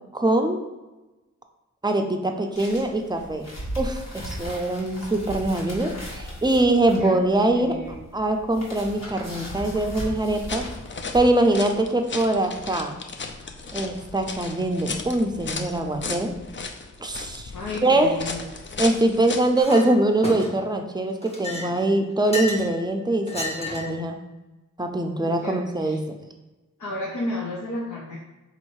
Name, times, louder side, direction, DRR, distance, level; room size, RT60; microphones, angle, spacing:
voice 1, 0.1-0.6 1.8-3.5 3.8-7.8 8.1-10.6 11.1-13.0 13.7-16.3 17.0-17.5 17.8-18.2 18.8-24.2 24.8-26.0, right 2 dB, 15° right, 4 dB, 0.5 m, -23 dB
sound 1, 2.5-11.2, equal, 55° left, 1.5 m, -37 dB
voice 2, 7.5-7.9 17.5-18.5 25.2-26.0 26.8-28.2, left 1 dB, 75° left, -4 dB, 0.8 m, -32 dB
sound 2, 10.3-19.6, left 4 dB, 40° left, 0.5 m, -35 dB
Chink clink, 19.6-19.9 20.2-20.7 21.2-22.7 23.3-24.0, left 2 dB, 20° left, 1.0 m, -32 dB
4.0 x 2.7 x 4.6 m, 1.1 s
wide cardioid pair, 80°, 31 cm